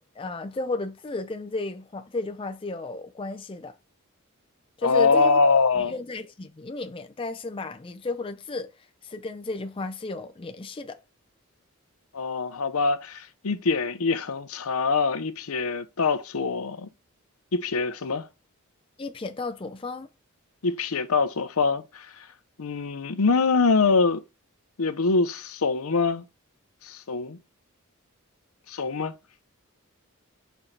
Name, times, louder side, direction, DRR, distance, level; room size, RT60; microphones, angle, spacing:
voice 1, 0.2-3.7 4.8-5.4 5.8-8.7 9.0-11.0 19.0-20.1, left 3 dB, 25° left, 0.5 m, -33 dB
voice 2, 4.8-5.9 12.1-16.9 17.5-18.3 20.6-22.1 22.6-24.2 24.8-26.2 26.8-27.4 28.7-29.1, left 4 dB, 75° left, 0.7 m, -24 dB
5.9 x 4.7 x 3.9 m
head